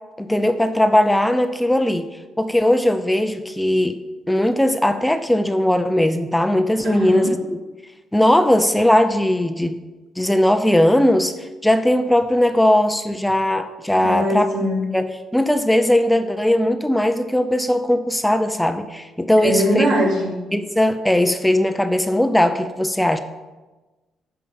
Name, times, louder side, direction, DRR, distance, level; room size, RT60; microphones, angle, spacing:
voice 1, 0.2-2.1 2.4-4.0 4.3-7.4 8.1-9.8 10.2-14.5 14.9-19.9 20.5-23.2, left 1 dB, 5° left, 9 dB, 0.6 m, -18 dB
voice 2, 6.8-7.3 14.0-14.8 19.4-20.3, equal, 75° right, -3 dB, 3.5 m, -21 dB
9.0 x 5.8 x 7.8 m, 1.2 s
cardioid pair, 90°, 0 cm